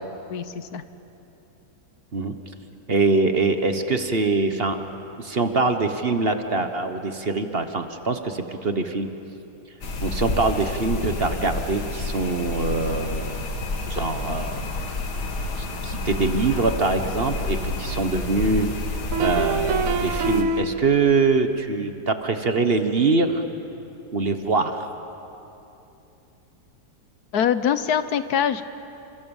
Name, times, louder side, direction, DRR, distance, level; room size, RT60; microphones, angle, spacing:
voice 1, 0.3-0.8 27.3-28.6, left 8 dB, 70° left, 12 dB, 1.4 m, -23 dB
voice 2, 2.9-4.8 5.2-9.1 10.0-13.5 13.9-14.6 15.6-18.7 19.2-23.4 24.1-24.9, right 3 dB, 40° right, 8 dB, 1.4 m, -23 dB
sound 1, 9.8-20.4, left 3 dB, 85° left, 2.5 m, -29 dB
sound 2, 17.8-17.9 19.1-21.1, right 4 dB, 60° right, 1.3 m, -25 dB
30.0 x 26.5 x 7.2 m, 2.9 s
omnidirectional pair, 1.7 m